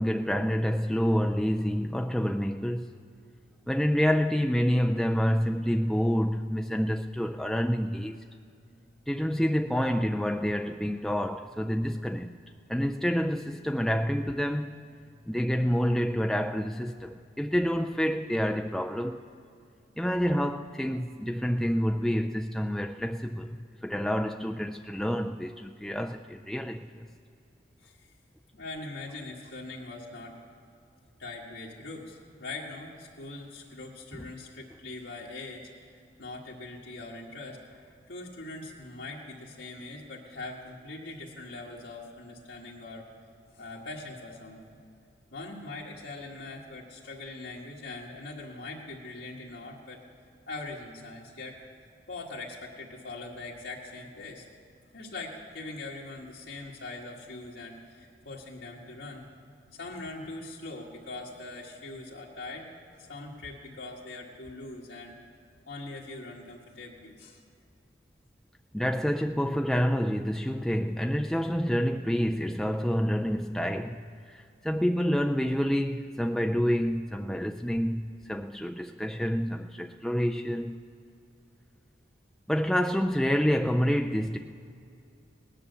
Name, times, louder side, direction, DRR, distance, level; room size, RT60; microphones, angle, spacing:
voice 1, 0.0-2.9 3.7-8.2 9.1-12.4 12.7-14.7 15.3-19.3 20.0-23.6 23.8-27.0 34.1-34.3 68.7-80.8 82.5-84.4, equal, ahead, 0.3 m, -28 dB
voice 2, 28.5-30.4 31.2-35.7 36.2-43.1 43.5-44.8 45.3-50.0 50.5-51.6 52.1-54.4 54.9-59.3 59.7-62.7 63.0-65.1 65.7-67.4, left 2 dB, 85° left, 1.7 m, -42 dB
18.5 x 10.0 x 6.7 m
head